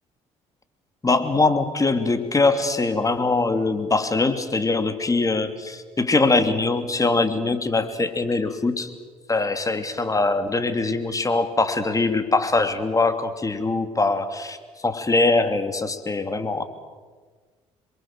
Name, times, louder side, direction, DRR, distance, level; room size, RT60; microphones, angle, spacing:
voice 1, 1.0-8.9 9.3-16.6, left 3 dB, 25° left, 8 dB, 2.9 m, -22 dB
27.0 x 23.0 x 7.6 m, 1.5 s
supercardioid pair, 65°, 14 cm